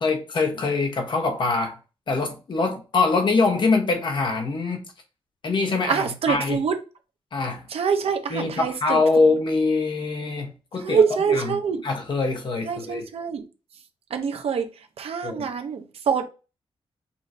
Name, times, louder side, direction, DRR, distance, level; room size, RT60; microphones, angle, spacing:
voice 1, 0.0-1.8 2.1-4.8 5.4-6.6 7.3-7.6 8.3-11.0 11.3-11.5 11.8-13.0 15.2-15.5, left 3 dB, 50° left, 1.2 m, -23 dB
voice 2, 5.9-6.8 7.7-9.0 10.8-11.8 12.6-13.4 14.1-14.7 15.0-16.3, right 6 dB, 75° right, 0.8 m, -25 dB
5.6 x 3.1 x 2.7 m
wide cardioid pair, 140°, 10 cm